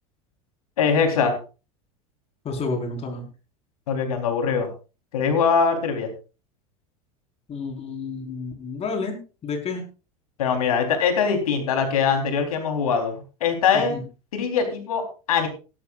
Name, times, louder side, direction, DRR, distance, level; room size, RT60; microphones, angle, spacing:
voice 1, 0.8-1.3 3.9-4.7 5.1-6.1 10.4-14.0 14.3-15.0 15.3-15.5, left 6 dB, 80° left, 5 dB, 3.9 m, -22 dB
voice 2, 2.4-3.2 7.5-9.8 13.7-14.0, left 4 dB, 35° left, 3 dB, 4.8 m, -30 dB
17.0 x 13.0 x 2.5 m, 0.33 s
hypercardioid pair, 90°, 18 cm